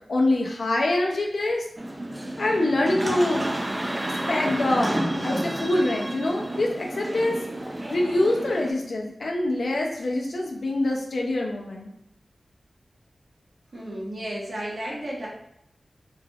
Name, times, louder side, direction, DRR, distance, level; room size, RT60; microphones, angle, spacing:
voice 1, 0.1-1.6 2.4-3.5 4.3-4.9 5.2-7.4 7.9-11.9, left 2 dB, 70° left, 0 dB, 0.6 m, -25 dB
sound 1, 1.8-8.7, right 1 dB, 25° right, 0.4 m, -30 dB
voice 2, 13.7-15.3, right 1 dB, 60° right, -6 dB, 1.4 m, -33 dB
3.5 x 3.3 x 2.4 m, 0.77 s
wide cardioid pair, 100°, 0 cm